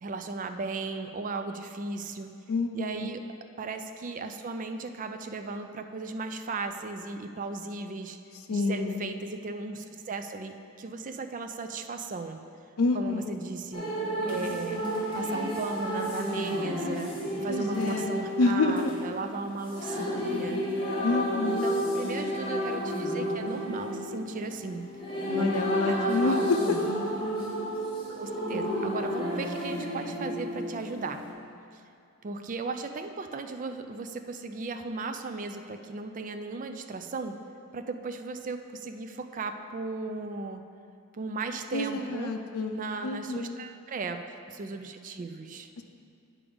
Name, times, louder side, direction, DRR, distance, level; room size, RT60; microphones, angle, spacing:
voice 1, 0.0-2.3 2.7-3.2 3.6-8.2 8.5-12.4 12.9-13.8 14.3-14.9 15.1-17.1 17.4-20.0 20.4-20.6 21.5-24.8 25.3-26.9 28.2-31.3 31.7-31.8 32.2-37.4 37.7-40.6 41.1-42.3 42.7-44.2 44.5-45.7, right 3 dB, 35° right, 7 dB, 0.4 m, -36 dB
voice 2, 2.5-2.9 8.5-9.0 12.8-13.4 17.5-18.9 21.0-21.7 25.3-26.4 41.7-42.7 43.0-43.5 45.8-45.9, left 3 dB, 75° left, 3 dB, 0.5 m, -28 dB
sound 1, 13.7-31.3, equal, 25° left, 1.5 m, -31 dB
8.6 x 4.9 x 5.2 m, 2.4 s
head